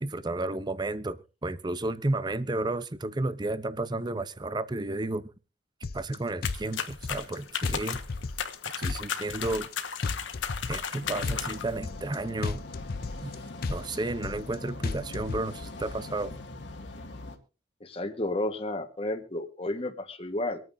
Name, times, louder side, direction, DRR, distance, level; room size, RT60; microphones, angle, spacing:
voice 1, 0.0-5.3 5.9-8.0 8.8-9.7 10.7-12.6 13.2-13.3 13.7-16.4, right 2 dB, 25° right, 0.6 m, -32 dB
sound 1, 5.8-6.1 6.4-7.3 7.6-8.5 8.8-9.7 10.0-10.9 11.2-12.1 12.4-13.3 13.6-14.5 14.8-15.4, left 3 dB, 55° left, 0.5 m, -33 dB
sound 2, 6.4-11.8, left 7 dB, 85° left, 1.3 m, -35 dB
sound 3, 11.0-17.4, left 2 dB, 70° left, 2.0 m, -42 dB
voice 2, 17.8-20.6, left 1 dB, 30° left, 1.3 m, -32 dB
25.0 x 9.2 x 2.6 m
head